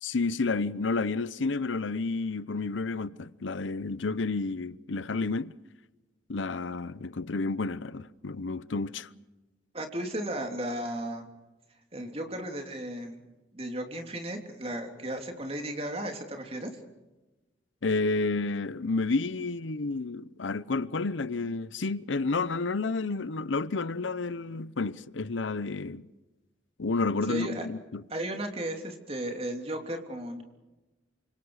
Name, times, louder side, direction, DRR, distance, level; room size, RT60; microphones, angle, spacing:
voice 1, 0.0-5.5 6.3-9.1 17.8-26.1 26.8-28.0, left 3 dB, 90° left, 0.8 m, -30 dB
voice 2, 9.7-11.3 11.9-13.2 13.5-16.7 27.3-27.7 28.1-30.4, right 1 dB, 30° right, 3.2 m, -35 dB
29.0 x 26.0 x 4.9 m
head